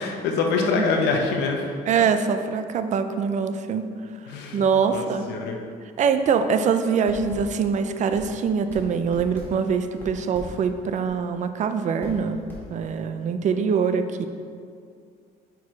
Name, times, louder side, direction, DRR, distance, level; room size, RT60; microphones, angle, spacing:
voice 1, 0.0-1.6 4.3-4.6 4.9-5.6, left 4 dB, 85° left, 2 dB, 0.9 m, -25 dB
voice 2, 1.9-3.8 4.5-5.2 6.0-12.4 12.7-14.3, right 6 dB, 45° right, 9 dB, 0.5 m, -23 dB
sound 1, 7.0-13.2, left 1 dB, 10° left, 1.6 m, -42 dB
6.2 x 4.6 x 4.7 m, 2.3 s
cardioid pair, 110°, 17 cm